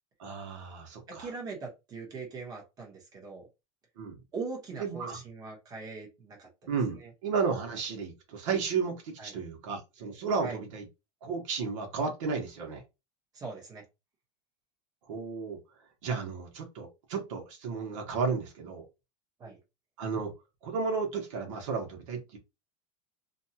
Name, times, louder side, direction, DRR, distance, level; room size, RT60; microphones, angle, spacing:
voice 1, 0.2-1.3 4.0-4.2 4.8-5.2 6.7-10.9 11.2-12.8 15.1-15.6 16.0-18.8 20.0-20.3 20.6-22.4, right 5 dB, 75° right, 1.1 m, -33 dB
voice 2, 1.1-3.5 4.3-6.5 7.0-7.1 9.2-9.3 10.4-10.6 13.3-13.8 19.4-19.6, right 4 dB, 25° right, 1.0 m, -41 dB
2.6 x 2.3 x 2.7 m
supercardioid pair, 170°, 16 cm